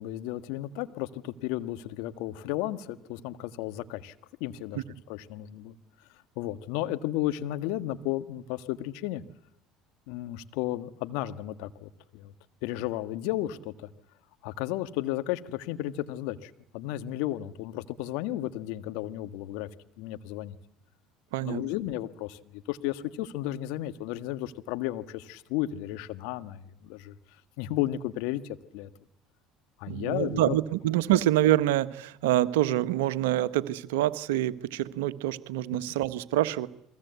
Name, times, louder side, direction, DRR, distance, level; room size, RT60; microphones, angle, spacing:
voice 1, 0.0-4.1 4.4-4.8 5.1-5.7 6.4-9.2 10.1-12.3 12.6-13.9 14.4-19.7 20.0-20.5 21.4-27.1 27.6-28.4 28.7-28.9 29.8-30.6, left 14 dB, 70° left, 10 dB, 1.6 m, -33 dB
voice 2, 29.9-36.7, right 14 dB, 75° right, 14 dB, 1.3 m, -26 dB
29.0 x 22.0 x 8.3 m, 0.77 s
hypercardioid pair, 65°, 0 cm